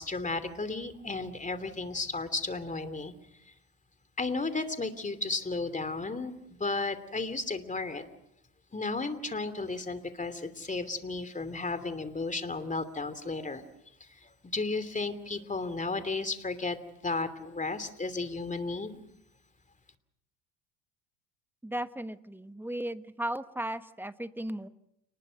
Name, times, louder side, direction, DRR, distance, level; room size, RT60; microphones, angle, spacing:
voice 1, 0.0-3.1 4.2-6.3 6.6-8.1 8.7-13.6 14.0-16.8 17.0-19.0, left 3 dB, 15° left, 12 dB, 2.8 m, -34 dB
voice 2, 21.6-24.7, right 1 dB, 5° right, 12 dB, 1.2 m, -36 dB
29.5 x 20.5 x 6.5 m, 0.80 s
hypercardioid pair, 85°, 49 cm